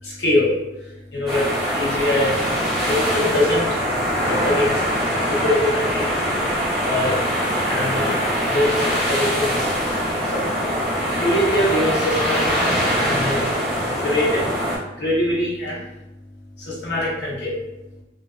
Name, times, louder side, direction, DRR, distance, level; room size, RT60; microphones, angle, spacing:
voice 1, 0.0-2.4 2.7-3.8 4.2-6.1 6.8-7.2 7.6-8.2 8.4-9.8 10.2-10.5 11.1-12.6 12.9-13.5 14.0-14.5 15.0-15.9 16.6-17.6, left 1 dB, 65° left, -5 dB, 0.8 m, -23 dB
sound 1, 1.3-14.8, equal, ahead, 0.9 m, -23 dB
2.4 x 2.2 x 2.3 m, 0.96 s
head